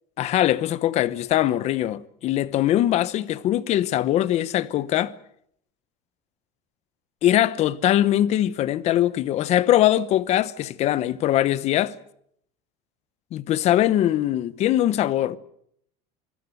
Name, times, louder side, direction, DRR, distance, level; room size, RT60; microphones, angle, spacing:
voice 1, 0.2-5.1 7.2-11.9 13.3-15.4, left 13 dB, 40° left, 1.0 m, -22 dB
26.0 x 17.0 x 8.0 m
cardioid pair, 165°, 17 cm